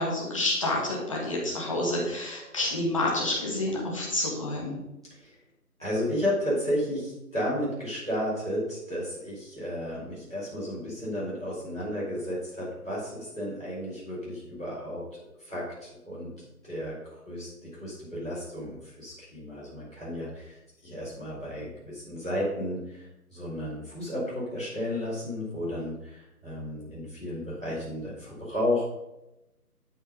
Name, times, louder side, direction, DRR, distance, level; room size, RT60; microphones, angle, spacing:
voice 1, 0.0-4.8, left 1 dB, 20° left, -2 dB, 1.9 m, -29 dB
voice 2, 5.8-15.0 15.4-16.3 16.6-17.0 17.2-28.8, left 1 dB, 5° right, -22 dB, 1.2 m, -33 dB
11.5 x 5.7 x 5.3 m, 0.93 s
figure-of-eight pair, 165°, 47 cm